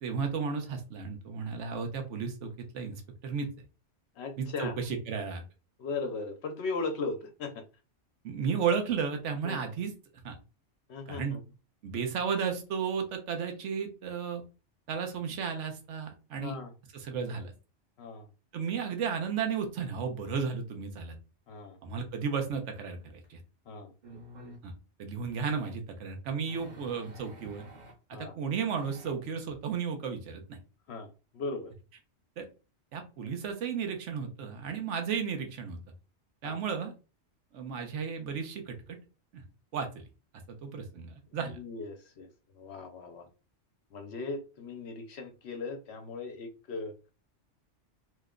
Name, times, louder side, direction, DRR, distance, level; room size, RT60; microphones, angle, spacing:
voice 1, 0.0-3.5 4.4-5.4 8.2-9.9 10.2-10.3 11.1-11.4 11.8-14.4 14.9-16.5 16.9-17.5 18.5-21.2 21.8-23.4 24.6-24.7 25.0-27.6 28.2-30.6 32.4-32.5 32.9-35.8 36.4-36.9 37.5-38.8 39.3-39.4 39.7-40.0 40.5-41.6, right 6 dB, 80° right, 5 dB, 1.1 m, -33 dB
voice 2, 4.2-4.8 5.8-7.6 9.4-9.6 10.9-11.4 16.4-16.7 18.0-18.3 21.5-21.8 23.7-23.9 28.1-28.3 30.9-31.7 33.2-33.3 36.4-36.6 41.4-42.3 42.5-43.3 43.9-46.9, left 3 dB, 70° left, 6 dB, 0.8 m, -38 dB
sound 1, 23.2-23.3 24.0-24.6 25.3-25.8 26.5-27.9 28.7-29.1, right 1 dB, 45° right, 0.8 m, -49 dB
3.0 x 2.1 x 3.6 m, 0.32 s
omnidirectional pair, 1.2 m